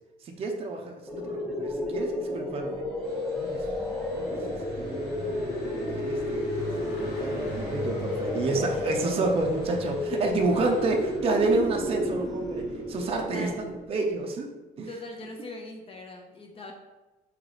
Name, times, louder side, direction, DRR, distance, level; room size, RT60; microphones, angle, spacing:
voice 1, 0.2-2.8 3.4-3.7 4.1-4.4 4.7-14.5 14.8-14.9, right 2 dB, 35° right, 2 dB, 0.5 m, -29 dB
sound 1, 1.1-13.9, left 1 dB, ahead, 0.7 m, -32 dB
sound 2, 3.0-11.2, right 4 dB, 75° right, 0.7 m, -50 dB
Car passing by, 3.4-13.9, left 2 dB, 85° left, 1.2 m, -42 dB
voice 2, 8.6-9.2 10.5-10.8 13.1-13.7 14.9-16.7, left 2 dB, 35° left, 1 dB, 0.6 m, -41 dB
3.8 x 2.8 x 3.1 m, 1.1 s
cardioid pair, 110°, 17 cm